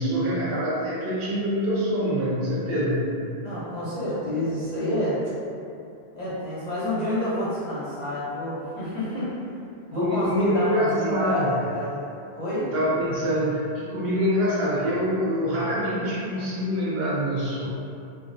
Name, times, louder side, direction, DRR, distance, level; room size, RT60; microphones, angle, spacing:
voice 1, 0.0-3.1 9.9-11.5 12.6-17.7, equal, 70° right, -7 dB, 0.8 m, -25 dB
voice 2, 3.4-5.2 6.1-9.3 9.9-12.0 12.3-12.7, left 1 dB, 50° left, -10 dB, 0.6 m, -28 dB
2.4 x 2.0 x 2.5 m, 2.6 s
omnidirectional pair, 1.1 m